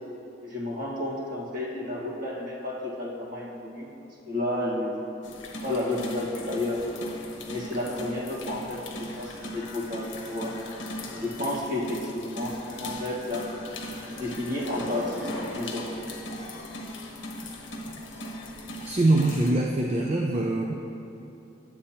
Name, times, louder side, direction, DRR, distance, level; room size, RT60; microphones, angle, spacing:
voice 1, 0.4-3.9 4.3-5.1 5.6-6.8 7.4-8.8 9.2-10.5 11.1-13.5 14.1-15.9, left 1 dB, 50° right, -5 dB, 1.5 m, -31 dB
sound 1, 5.2-19.5, left 1 dB, 70° left, 0.9 m, -38 dB
voice 2, 18.9-20.7, right 2 dB, 35° right, 1 dB, 0.4 m, -23 dB
9.7 x 7.7 x 2.9 m, 2.9 s
head